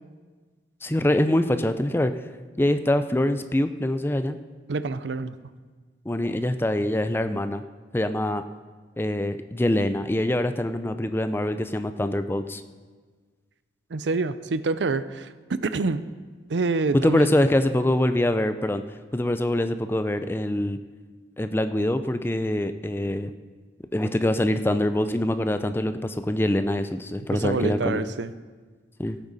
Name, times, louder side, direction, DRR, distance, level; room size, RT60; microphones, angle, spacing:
voice 1, 0.8-2.1 2.6-4.4 6.1-7.6 7.9-8.4 9.0-12.6 16.9-18.8 19.1-20.8 21.4-23.3 23.9-28.1 29.0-29.2, left 1 dB, 15° left, 10 dB, 0.4 m, -24 dB
voice 2, 4.7-5.4 13.9-15.3 15.6-16.0 16.5-17.3 27.3-28.3, right 3 dB, 85° right, 13 dB, 0.5 m, -26 dB
17.0 x 9.0 x 4.1 m, 1.5 s
head